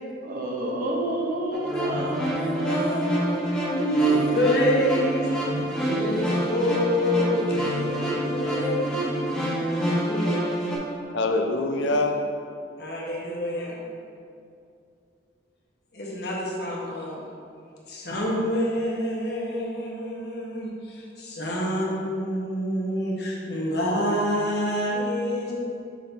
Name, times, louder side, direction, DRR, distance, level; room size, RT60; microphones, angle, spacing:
voice 1, 0.2-6.2 7.0-9.7, right 1 dB, 50° right, 0 dB, 0.8 m, -31 dB
sound 1, 1.5-10.8, equal, 5° left, 1.0 m, -27 dB
voice 2, 1.7-3.0 3.7-5.3 5.8-8.8 9.7-10.4 12.8-13.8 15.9-17.2 17.9-25.6, equal, 60° left, -3 dB, 1.1 m, -27 dB
voice 3, 2.9-3.5 4.1-4.3 6.1-6.3 11.1-12.2, left 2 dB, 80° left, 4 dB, 0.5 m, -27 dB
6.3 x 3.8 x 4.0 m, 2.5 s
head